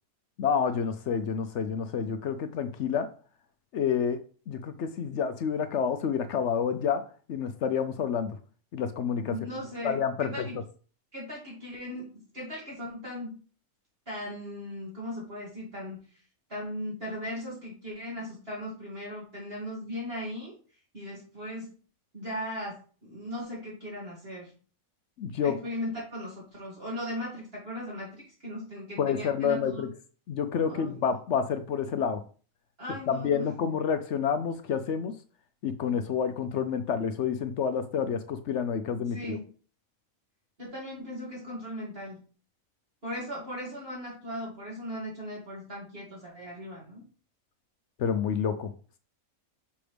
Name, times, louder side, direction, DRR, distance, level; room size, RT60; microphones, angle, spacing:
voice 1, 0.4-3.1 3.7-4.2 4.5-7.0 7.3-8.3 8.7-9.3 9.8-10.4 25.2-25.5 29.0-29.9 30.3-32.2 33.1-35.1 35.6-39.4 48.0-48.7, left 7 dB, 65° left, 9 dB, 0.8 m, -28 dB
voice 2, 9.3-10.6 11.1-13.4 14.1-16.1 16.5-20.6 20.9-21.7 22.1-24.5 25.4-29.9 30.7-31.0 32.8-33.5 39.1-39.5 40.6-42.2 43.0-47.0, equal, 40° right, -6 dB, 2.6 m, -38 dB
6.2 x 5.8 x 3.4 m, 0.40 s
omnidirectional pair, 1.5 m